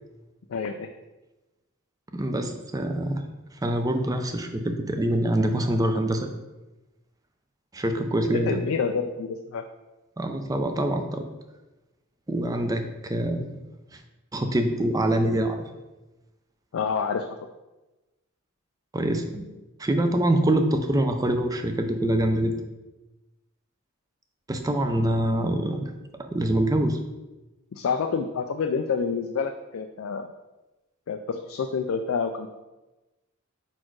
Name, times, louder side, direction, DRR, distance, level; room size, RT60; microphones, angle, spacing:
voice 1, 0.5-0.9 8.3-9.6 16.7-17.3 27.7-30.3 31.1-32.5, left 5 dB, 70° left, 5 dB, 0.4 m, -28 dB
voice 2, 2.1-3.2 3.6-6.3 7.7-8.6 10.2-11.2 12.3-13.6 13.9-14.0 14.3-15.6 18.9-19.5 19.8-22.6 24.5-25.9 26.2-27.0, right 1 dB, 15° right, 6 dB, 0.5 m, -25 dB
4.8 x 4.3 x 4.6 m, 1.1 s
head